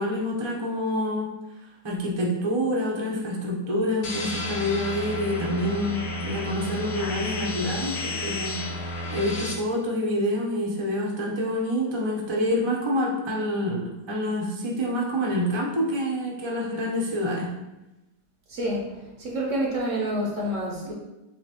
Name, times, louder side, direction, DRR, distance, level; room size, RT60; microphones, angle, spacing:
voice 1, 0.0-1.3 1.8-17.5, left 1 dB, 30° right, -3 dB, 0.5 m, -27 dB
sound 1, 4.0-9.5, left 1 dB, 70° left, 1.1 m, -32 dB
voice 2, 18.5-20.9, right 1 dB, 55° right, -3 dB, 0.9 m, -28 dB
6.6 x 2.4 x 2.9 m, 1.0 s
omnidirectional pair, 1.8 m